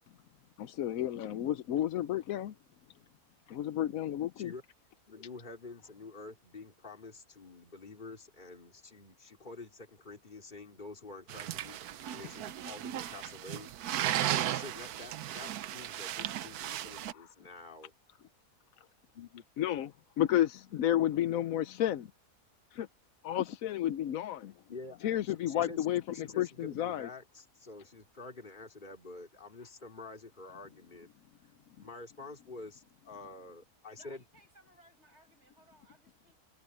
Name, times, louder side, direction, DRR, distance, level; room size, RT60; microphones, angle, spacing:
voice 1, 0.6-2.5 3.5-4.5 17.1-17.3 19.6-22.1 22.7-22.9 23.2-24.5 25.0-27.1, left 12 dB, 70° left, 1.1 m, -31 dB
voice 2, 5.1-13.7 14.4-17.9 19.1-19.5 24.7-31.1 31.8-34.2, left 3 dB, 30° left, 3.6 m, -48 dB
sound 1, 11.3-17.1, right 12 dB, 90° right, 1.2 m, -36 dB
voice 3, 34.0-36.3, right 1 dB, 45° right, 8.5 m, -62 dB
omnidirectional pair, 1.6 m